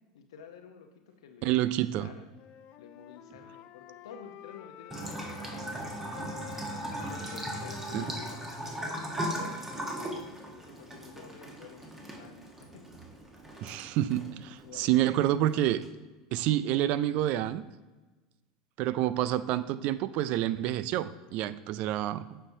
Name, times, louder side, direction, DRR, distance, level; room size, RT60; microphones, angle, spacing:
voice 1, 0.1-2.3 2.8-6.5 7.1-8.4 8.8-13.0 14.6-15.3, left 6 dB, 80° left, 5 dB, 0.8 m, -51 dB
voice 2, 1.4-2.1 7.9-8.1 13.6-15.8 16.3-17.6 18.8-22.4, right 13 dB, 55° right, 15 dB, 0.3 m, -28 dB
Wind instrument woodwind instrument, 2.3-5.8 6.1-10.3, left 11 dB, 55° left, 0.4 m, -50 dB
Bathtub (filling or washing) / Trickle dribble, 4.9-15.9, right 1 dB, 15° right, 1.3 m, -38 dB
8.3 x 5.6 x 2.7 m, 1.2 s
hypercardioid pair, 85°, 3 cm